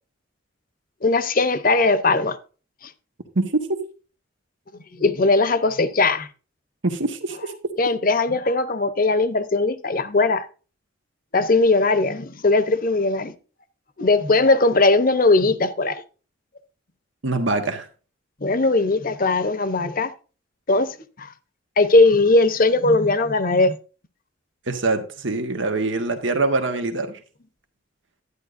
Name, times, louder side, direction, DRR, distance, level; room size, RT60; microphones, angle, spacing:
voice 1, 1.0-2.4 4.9-6.3 7.8-10.5 11.3-13.3 14.0-16.0 18.4-20.1 20.7-21.3 21.8-23.8, left 3 dB, 45° left, 0.8 m, -19 dB
voice 2, 3.3-3.8 6.8-7.5 17.2-17.9 24.7-27.2, right 2 dB, 70° right, 1.3 m, -24 dB
11.5 x 9.8 x 2.5 m
head